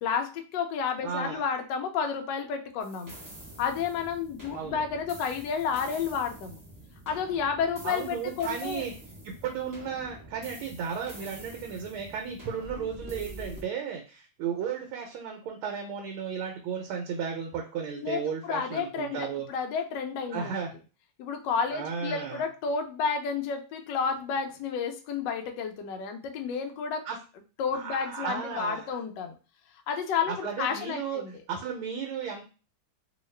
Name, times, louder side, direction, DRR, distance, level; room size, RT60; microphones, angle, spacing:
voice 1, 0.0-3.2 3.6-6.6 7.1-8.8 18.0-20.5 21.2-27.0 27.6-29.4 29.9-31.3, left 6 dB, 70° left, 5 dB, 1.1 m, -31 dB
voice 2, 1.0-1.4 4.5-4.8 7.8-8.9 9.2-19.5 20.3-20.7 21.7-22.5 27.0-27.2 27.7-29.0 30.3-32.5, right 7 dB, 85° right, 2 dB, 1.5 m, -34 dB
sound 1, 2.8-13.6, right 1 dB, 30° right, 0.3 m, -46 dB
3.0 x 2.8 x 3.2 m, 0.34 s
omnidirectional pair, 2.3 m